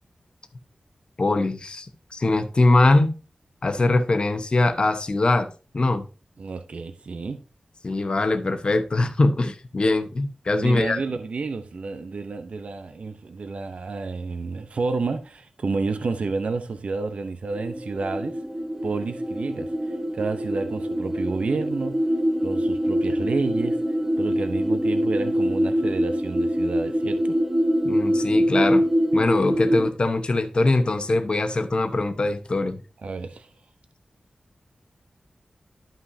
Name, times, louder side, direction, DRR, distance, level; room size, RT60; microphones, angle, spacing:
voice 1, 1.2-3.1 3.6-5.5 5.7-6.1 7.8-11.0 27.8-28.8 29.1-32.8, left 2 dB, 45° left, 0.9 m, -22 dB
voice 2, 6.4-7.4 10.5-18.4 18.8-19.7 20.1-22.0 22.4-23.8 24.2-27.4 33.0-33.5, right 4 dB, 70° right, 0.8 m, -30 dB
sound 1, 17.5-29.9, equal, 20° right, 1.1 m, -24 dB
11.5 x 5.6 x 2.8 m
wide cardioid pair, 80°, 2 cm